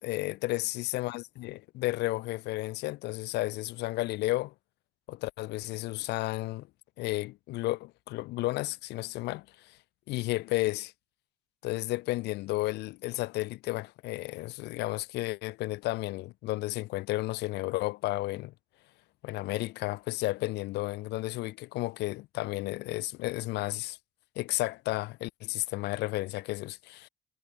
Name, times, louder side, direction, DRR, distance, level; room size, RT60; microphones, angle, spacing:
voice 1, 0.0-4.5 5.1-6.7 7.0-9.8 10.1-10.9 11.6-18.5 19.2-24.0 24.3-27.1, left 19 dB, 85° left, 1.3 m, -32 dB
cardioid pair, 110°, 17 cm